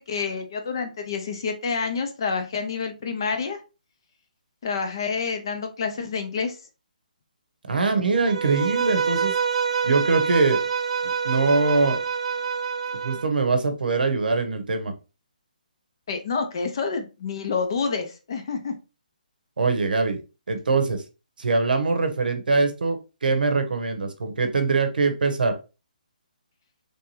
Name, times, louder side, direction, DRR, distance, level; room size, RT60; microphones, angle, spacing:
voice 1, 0.0-3.6 4.6-6.6 16.1-18.7, left 5 dB, 30° left, 6 dB, 0.5 m, -28 dB
voice 2, 7.7-9.4 9.8-10.7 11.0-12.0 13.0-14.9 19.6-20.2 20.5-21.0 21.4-25.5, right 3 dB, 80° right, 7 dB, 0.8 m, -23 dB
Bowed string instrument, 8.3-13.2, right 6 dB, 40° right, 0.4 m, -26 dB
3.3 x 2.7 x 3.0 m, 0.30 s
hypercardioid pair, 175°, 5 cm